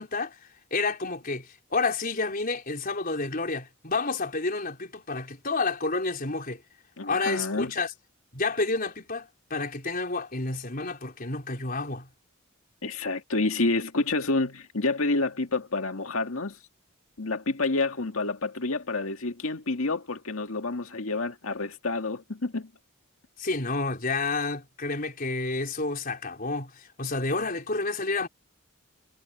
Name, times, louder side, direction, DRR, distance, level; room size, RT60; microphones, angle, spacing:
voice 1, 0.0-6.6 7.0-7.9 8.3-12.1 23.4-28.3, left 3 dB, 45° left, 4.5 m, -30 dB
voice 2, 7.0-7.7 12.8-16.6 17.2-22.7, left 3 dB, 75° left, 2.0 m, -28 dB
head